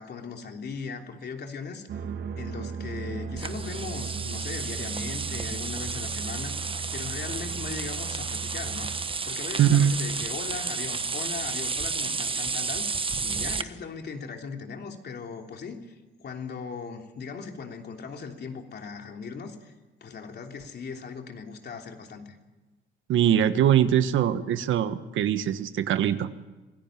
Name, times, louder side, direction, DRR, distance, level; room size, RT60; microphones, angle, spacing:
voice 1, 0.0-1.9 2.4-8.9 9.2-12.8 13.2-19.7 20.0-22.4, left 5 dB, 55° left, 3 dB, 3.3 m, -38 dB
sound 1, 1.9-9.1, right 6 dB, 60° right, 2.2 m, -37 dB
sound 2, 3.4-13.6, right 4 dB, 25° right, 1.1 m, -32 dB
voice 2, 9.6-10.0 23.1-26.3, right 10 dB, 80° right, 11 dB, 1.4 m, -22 dB
26.0 x 17.5 x 9.0 m, 1.2 s
cardioid pair, 90°, 20 cm